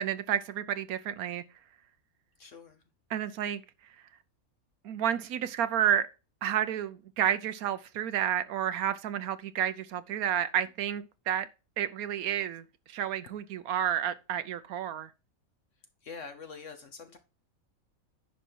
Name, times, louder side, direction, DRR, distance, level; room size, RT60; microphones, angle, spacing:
voice 1, 0.0-1.4 3.1-3.6 4.8-6.1 6.4-11.5 11.8-15.1, right 10 dB, 85° right, 1.1 m, -30 dB
voice 2, 2.4-2.8 16.0-17.2, left 5 dB, 60° left, 1.2 m, -45 dB
10.0 x 5.3 x 4.5 m
omnidirectional pair, 1.5 m